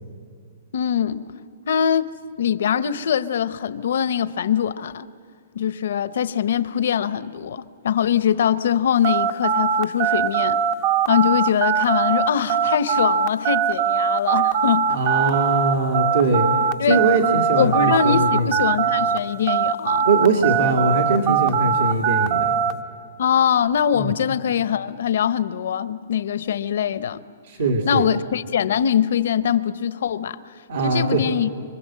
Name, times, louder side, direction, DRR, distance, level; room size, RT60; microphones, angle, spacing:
voice 1, 0.7-1.3 1.7-5.1 5.5-10.6 11.1-14.9 16.8-17.0 17.5-20.1 23.2-27.2 27.8-30.4 30.8-31.5, left 8 dB, 65° left, 0.8 m, -22 dB
sound 1, 9.0-19.2 19.5-22.7, right 7 dB, 30° right, 0.6 m, -21 dB
voice 2, 14.9-16.5 16.8-18.5 20.0-22.5 23.9-24.1 27.4-28.1 30.7-31.2, right 3 dB, 80° right, 2.3 m, -21 dB
25.5 x 25.0 x 7.6 m
hypercardioid pair, 165°, 0 cm